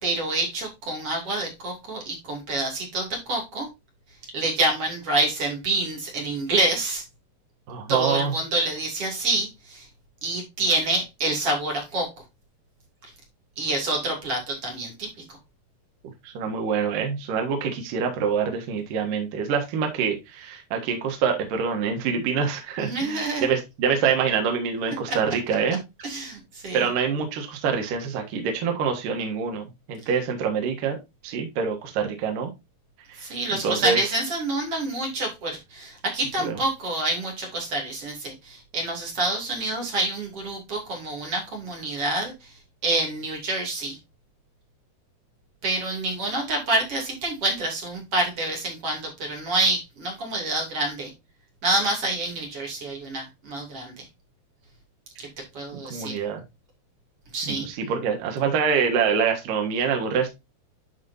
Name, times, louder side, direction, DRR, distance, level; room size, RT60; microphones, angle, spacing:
voice 1, 0.0-3.7 4.3-7.0 7.9-9.9 10.2-12.1 13.6-15.1 22.8-23.5 25.1-25.2 26.0-26.9 33.2-42.5 42.8-44.0 45.6-51.1 51.6-54.0 55.2-55.3 55.5-56.1 57.3-57.7, right 2 dB, 35° right, 0 dB, 3.1 m, -27 dB
voice 2, 7.7-8.3 16.2-25.8 26.7-31.0 31.2-32.5 33.1-34.1 36.4-36.6 55.7-56.4 57.5-60.3, right 6 dB, 60° right, 3 dB, 2.8 m, -26 dB
11.5 x 5.0 x 2.6 m, 0.23 s
omnidirectional pair, 5.1 m